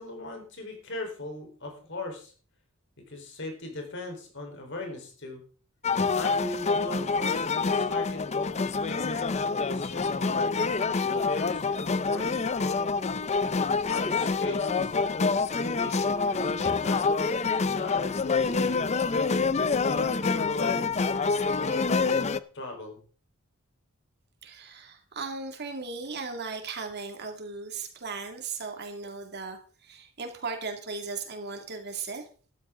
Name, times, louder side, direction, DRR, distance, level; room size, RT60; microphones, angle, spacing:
voice 1, 0.0-2.3 3.1-5.4 6.1-12.8 13.9-15.0 15.5-18.9 19.6-23.0, left 1 dB, 60° left, 3 dB, 4.1 m, -39 dB
sound 1, 5.8-22.4, left 4 dB, 30° left, 0.5 m, -27 dB
voice 2, 24.4-32.3, right 4 dB, 50° right, 4 dB, 2.3 m, -37 dB
13.5 x 12.5 x 3.7 m, 0.39 s
head